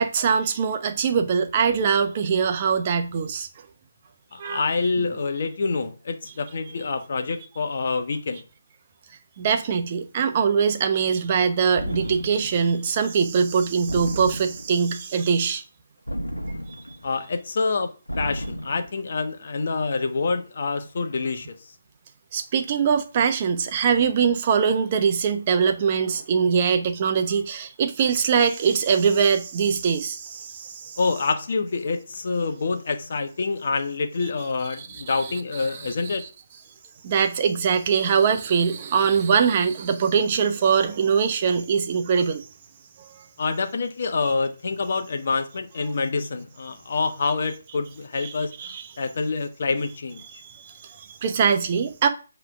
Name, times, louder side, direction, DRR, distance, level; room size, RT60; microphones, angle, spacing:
voice 1, 0.0-3.5 4.4-4.7 9.4-15.6 22.3-31.0 34.8-36.3 37.0-42.4 48.2-48.3 48.6-48.9 50.3-52.1, right 6 dB, 30° right, 0.9 m, -22 dB
voice 2, 4.3-8.4 17.0-17.9 18.2-21.7 31.0-36.3 43.4-50.2, left 4 dB, 45° left, 1.1 m, -27 dB
sound 1, 11.8-12.6 13.9-14.8 16.1-17.1 18.1-18.9, equal, 90° left, 1.0 m, -32 dB
7.8 x 3.4 x 6.0 m
figure-of-eight pair, 145°, 0 cm